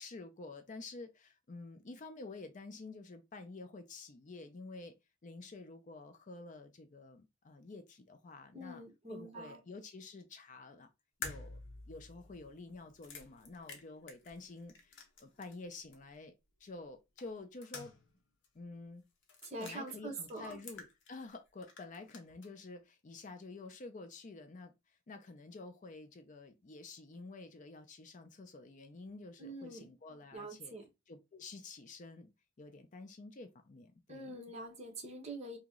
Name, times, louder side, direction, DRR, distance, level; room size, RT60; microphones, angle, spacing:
voice 1, 0.0-4.9 5.2-8.8 9.1-10.9 11.2-11.6 11.9-16.3 16.6-17.9 18.5-19.0 19.6-24.7 25.1-30.7 31.1-34.3, left 3 dB, 40° left, 0.5 m, -49 dB
voice 2, 8.5-9.6 19.4-20.6 29.4-29.9 30.3-30.9 34.1-35.6, right 2 dB, 35° right, 1.0 m, -45 dB
sound 1, 11.2-15.7 15.9-16.0 17.2-18.2 18.4-18.5 19.2-19.8 20.3-21.4 21.6-22.5, left 4 dB, 60° left, 0.9 m, -49 dB
2.9 x 2.8 x 3.6 m
head